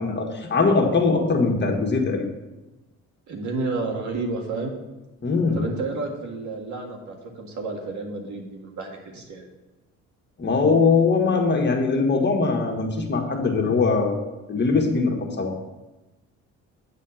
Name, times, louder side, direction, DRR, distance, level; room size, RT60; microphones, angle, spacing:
voice 1, 0.0-2.3 5.2-5.6 10.4-15.5, left 4 dB, 35° left, 2 dB, 1.5 m, -21 dB
voice 2, 3.3-4.7 5.5-9.5, right 3 dB, 70° right, 2 dB, 1.8 m, -31 dB
8.8 x 4.2 x 7.1 m, 1.1 s
cardioid pair, 90°, 30 cm